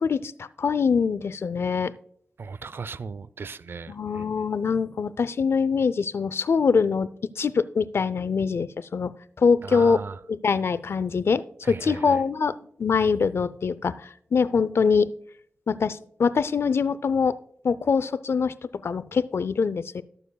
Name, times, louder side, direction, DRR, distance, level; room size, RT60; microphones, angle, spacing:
voice 1, 0.0-1.9 3.9-7.1 7.4-9.1 9.4-10.0 10.3-11.4 11.7-12.5 12.8-15.1 15.7-17.3 17.6-18.5 18.8-20.0, left 5 dB, 65° left, 0.4 m, -23 dB
voice 2, 2.4-4.3 9.6-10.2 11.6-12.2, right 5 dB, 55° right, 0.4 m, -37 dB
20.0 x 7.0 x 2.3 m
wide cardioid pair, 120°, 5 cm